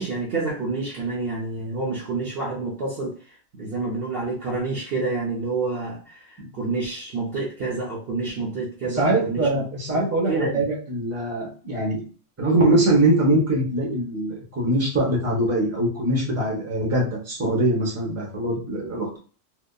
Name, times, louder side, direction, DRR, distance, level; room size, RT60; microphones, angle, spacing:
voice 1, 0.0-9.6 9.9-10.0 10.3-10.7, right 3 dB, 55° right, -4 dB, 0.7 m, -28 dB
voice 2, 8.9-12.0 12.4-19.2, right 1 dB, 15° right, -2 dB, 0.7 m, -22 dB
2.7 x 2.2 x 2.2 m, 0.39 s
omnidirectional pair, 1.4 m